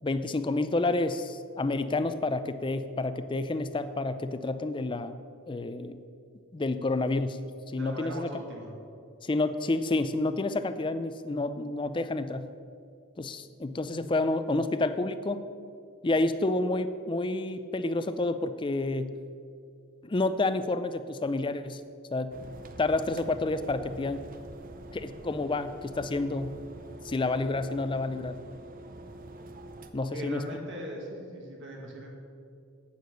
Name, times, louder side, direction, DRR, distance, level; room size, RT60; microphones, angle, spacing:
voice 1, 0.0-5.1 5.5-6.0 6.5-7.4 7.7-8.4 9.2-12.5 13.2-15.4 16.0-19.1 20.0-21.8 22.1-22.3 22.8-24.3 24.9-26.6 27.0-28.4 29.9-30.4, left 2 dB, 20° left, 11 dB, 0.4 m, -29 dB
voice 2, 7.8-8.7 30.0-32.1, right 1 dB, 55° right, -1 dB, 2.0 m, -39 dB
sound 1, 22.3-29.9, right 1 dB, 40° right, 0.7 m, -45 dB
9.3 x 8.6 x 6.4 m, 2.4 s
head